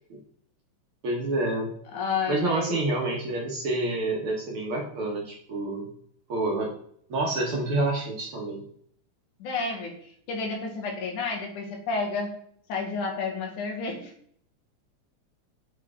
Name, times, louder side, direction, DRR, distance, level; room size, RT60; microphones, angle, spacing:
voice 1, 1.0-1.7 2.3-5.9 6.3-6.7 7.1-8.6, right 2 dB, 55° right, -1 dB, 1.6 m, -28 dB
voice 2, 1.9-2.8 9.4-12.3 12.7-14.1, left 4 dB, 85° left, 1 dB, 2.9 m, -31 dB
6.7 x 4.6 x 3.6 m, 0.62 s
omnidirectional pair, 3.5 m